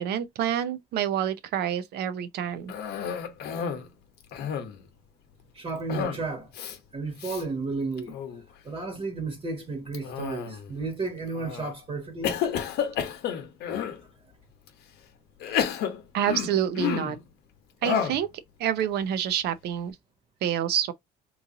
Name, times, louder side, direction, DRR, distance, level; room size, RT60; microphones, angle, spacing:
voice 1, 0.0-2.7 16.1-17.2 17.8-18.3 18.6-20.0 20.4-20.9, right 9 dB, 75° right, 0.7 m, -27 dB
Cough, 2.7-3.9 4.2-4.9 5.9-6.3 6.5-6.8 7.2-7.4 8.0-8.4 9.9-10.7 11.3-11.7 12.2-14.0 14.7-14.8 15.4-17.2 17.8-18.3, left 8 dB, 75° left, 0.8 m, -30 dB
voice 2, 5.5-6.5 6.9-8.2 8.6-12.4 15.5-15.6, right 3 dB, 35° right, 1.2 m, -33 dB
3.1 x 2.5 x 3.7 m
cardioid pair, 110°, 17 cm